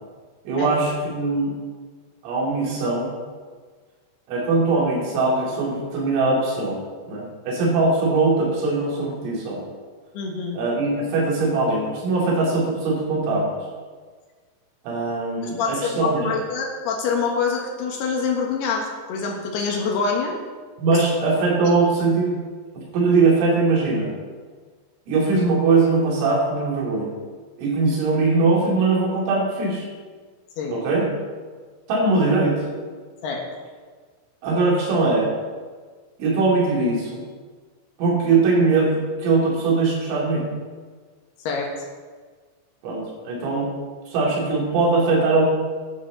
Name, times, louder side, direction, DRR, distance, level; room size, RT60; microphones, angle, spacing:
voice 1, 0.5-1.5 2.2-3.1 4.3-9.6 10.5-13.5 14.9-16.3 20.8-22.4 22.8-24.1 25.1-27.1 27.6-29.9 30.7-31.1 31.9-32.6 34.4-35.3 36.2-37.3 38.0-40.5 42.8-43.7 44.1-45.5, right 3 dB, 75° right, -3 dB, 5.2 m, -21 dB
voice 2, 10.1-10.6 15.6-20.3 30.6-30.8 33.2-33.4 41.5-41.7, left 5 dB, 65° left, 0 dB, 2.8 m, -25 dB
13.0 x 11.5 x 3.9 m, 1.5 s
omnidirectional pair, 6.0 m